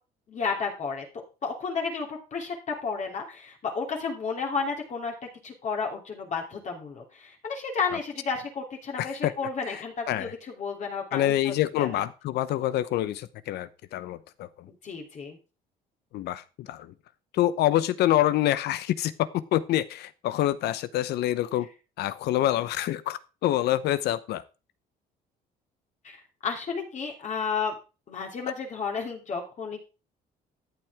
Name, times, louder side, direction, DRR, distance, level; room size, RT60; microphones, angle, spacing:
voice 1, 0.3-1.0 1.4-5.1 5.4-12.0 14.8-15.4 26.0-27.8 28.1-29.8, left 5 dB, 45° left, 1 dB, 2.9 m, -32 dB
voice 2, 9.0-9.3 9.7-10.3 11.1-14.7 16.1-16.9 17.3-21.7 22.0-24.4, left 13 dB, 75° left, 15 dB, 0.9 m, -26 dB
13.5 x 8.1 x 3.5 m, 0.32 s
cardioid pair, 110°, 17 cm